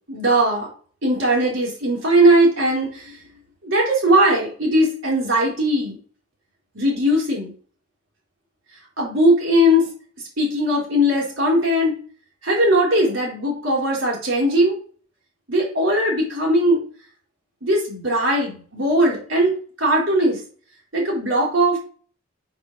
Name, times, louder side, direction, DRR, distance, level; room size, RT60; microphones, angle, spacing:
voice 1, 0.1-0.7 1.0-3.2 3.6-6.0 6.7-7.5 9.0-9.9 10.4-11.9 12.4-14.8 15.5-16.8 17.6-20.4 20.9-21.8, right 1 dB, 75° right, -3 dB, 4.3 m, -19 dB
7.8 x 7.3 x 3.4 m, 0.43 s
head